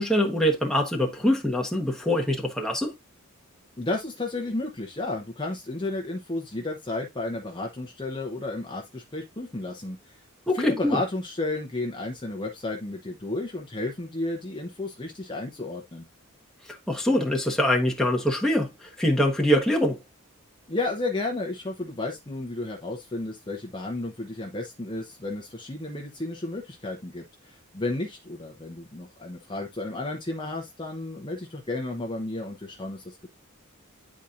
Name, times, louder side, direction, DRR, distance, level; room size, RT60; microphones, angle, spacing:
voice 1, 0.0-2.9 10.5-11.0 16.7-20.0, equal, 5° left, 1.2 m, -24 dB
voice 2, 3.8-10.2 10.5-16.1 20.7-33.3, left 2 dB, 20° left, 0.8 m, -32 dB
10.0 x 4.2 x 2.5 m
head